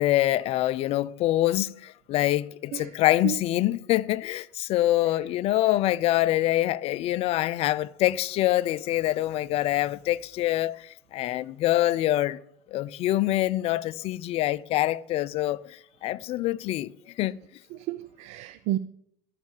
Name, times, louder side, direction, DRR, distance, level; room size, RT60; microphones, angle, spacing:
voice 1, 0.0-12.4 12.7-16.9 17.2-17.4, left 15 dB, 55° left, 0.5 m, -25 dB
voice 2, 17.7-18.8, right 14 dB, 65° right, 0.5 m, -31 dB
12.5 x 6.6 x 7.3 m
hypercardioid pair, 75°, 12 cm